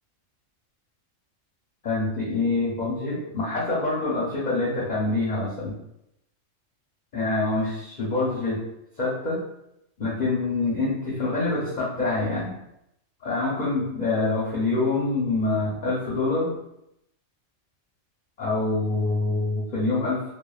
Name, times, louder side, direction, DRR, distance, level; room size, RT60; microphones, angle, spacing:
voice 1, 1.8-5.8 7.1-8.6 9.0-9.4 10.0-12.6 13.2-16.6 18.4-20.2, left 3 dB, 50° left, -6 dB, 0.5 m, -25 dB
2.6 x 2.1 x 2.2 m, 0.82 s
omnidirectional pair, 1.3 m